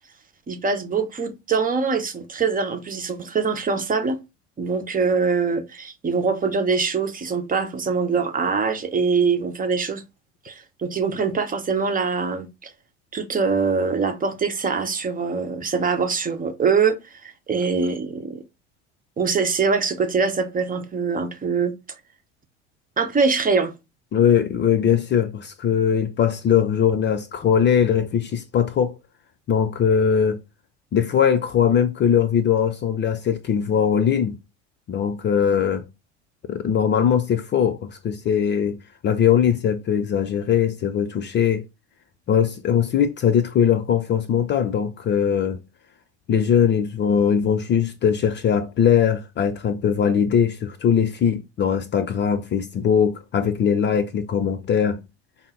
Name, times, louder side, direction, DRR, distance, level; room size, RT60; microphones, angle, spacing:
voice 1, 0.5-4.2 4.6-10.0 10.4-12.7 13.1-18.4 19.2-21.7 23.0-23.7, right 5 dB, 25° right, 0.9 m, -23 dB
voice 2, 24.1-29.0 29.5-30.4 30.9-34.4 34.9-35.8 36.5-41.6 42.3-45.6 46.3-55.0, left 8 dB, 30° left, 0.5 m, -20 dB
5.5 x 2.0 x 3.8 m
hypercardioid pair, 75°, 36 cm